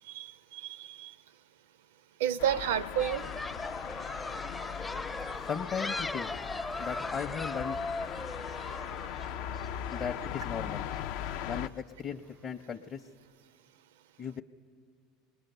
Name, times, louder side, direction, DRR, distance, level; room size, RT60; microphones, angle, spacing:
voice 1, 0.1-1.1 2.2-3.2, right 10 dB, 80° right, 0.5 m, -31 dB
sound 1, 2.4-11.7, left 9 dB, 70° left, 0.5 m, -39 dB
sound 2, 3.0-11.0, left 2 dB, 15° left, 0.5 m, -39 dB
voice 2, 5.5-6.3 6.8-7.8 9.9-10.9 11.4-13.0 14.2-14.4, left 7 dB, 40° left, 0.8 m, -37 dB
25.5 x 20.0 x 6.8 m
hypercardioid pair, 80°, 0 cm